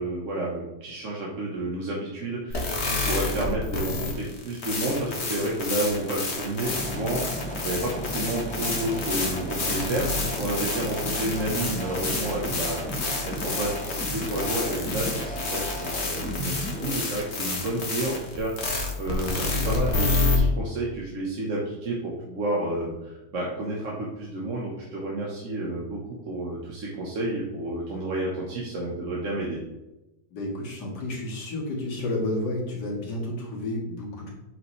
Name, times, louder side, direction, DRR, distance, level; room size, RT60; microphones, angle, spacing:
voice 1, 0.0-10.1 10.4-12.9 13.2-29.6, right 1 dB, 50° right, -4 dB, 1.4 m, -30 dB
sound 1, 2.5-20.4, left 3 dB, 45° left, 1.4 m, -29 dB
sound 2, 6.6-16.9, equal, 10° left, 0.5 m, -34 dB
voice 2, 30.3-34.3, left 1 dB, 80° left, -2 dB, 2.4 m, -31 dB
7.7 x 5.8 x 3.2 m, 0.98 s
omnidirectional pair, 1.8 m